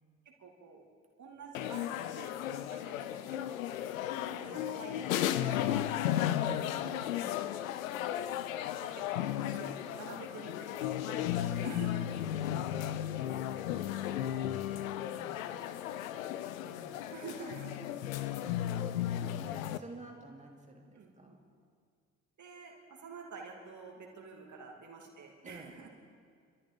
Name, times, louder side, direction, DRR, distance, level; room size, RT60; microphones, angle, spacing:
voice 1, 0.2-0.8 1.2-2.4 2.7-7.2 8.7-12.1 17.1-17.9 20.9-21.4 22.4-25.9, right 5 dB, 45° right, 0 dB, 2.6 m, -49 dB
sound 1, 1.5-19.8, left 11 dB, 75° left, 0.6 m, -35 dB
voice 2, 4.4-4.7 7.2-7.5 12.2-13.2 13.8-17.0 19.3-21.4 25.4-25.7, right 2 dB, 15° right, 0 dB, 2.8 m, -53 dB
27.5 x 13.0 x 3.8 m, 2.1 s
figure-of-eight pair, 40°, 41 cm